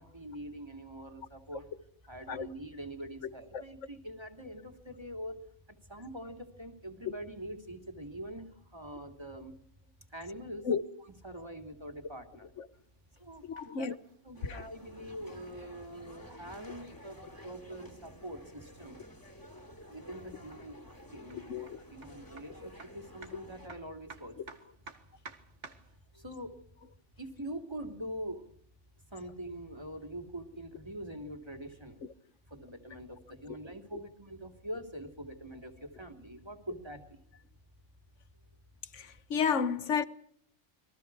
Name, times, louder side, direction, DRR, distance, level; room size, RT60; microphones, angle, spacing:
voice 1, 0.0-1.7 2.1-5.4 5.7-9.6 10.1-10.7 11.2-12.5 13.2-14.0 14.2-19.0 19.9-20.8 21.1-24.4 26.1-26.6 27.2-28.5 29.1-32.0 32.5-37.2, right 1 dB, 20° right, 3.0 m, -44 dB
sound 1, 12.7-26.0, right 4 dB, 75° right, 2.1 m, -57 dB
voice 2, 13.4-13.9 14.5-14.6 21.5-21.8 38.9-40.0, left 6 dB, 80° left, 1.5 m, -31 dB
sound 2, 14.3-23.7, left 1 dB, 15° left, 3.0 m, -52 dB
29.5 x 22.5 x 4.8 m
omnidirectional pair, 1.2 m